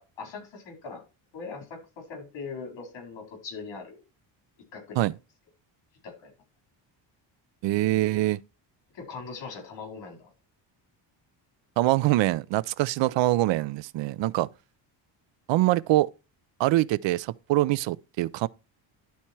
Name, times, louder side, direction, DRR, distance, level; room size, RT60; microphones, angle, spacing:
voice 1, 0.2-1.0 1.3-4.0 4.7-5.1 6.0-6.3 8.9-10.3, left 4 dB, 65° left, 4.6 m, -40 dB
voice 2, 7.6-8.4 11.8-14.5 15.5-16.1 16.6-18.5, right 17 dB, 70° right, 0.6 m, -24 dB
11.5 x 4.3 x 4.5 m
cardioid pair, 145°, 47 cm